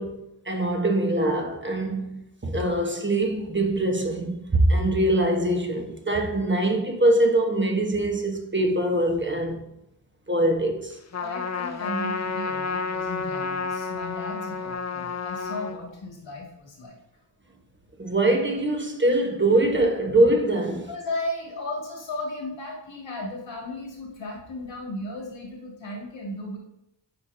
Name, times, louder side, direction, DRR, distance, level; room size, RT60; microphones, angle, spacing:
voice 1, 0.0-9.6 10.3-11.0 18.0-20.9, right 1 dB, 25° right, 1.2 m, -23 dB
Trumpet, 11.1-15.8, left 4 dB, 35° left, 0.6 m, -30 dB
voice 2, 11.2-17.0 20.6-26.6, left 1 dB, 70° left, 2.2 m, -35 dB
10.5 x 4.7 x 2.7 m
cardioid pair, 55°, 46 cm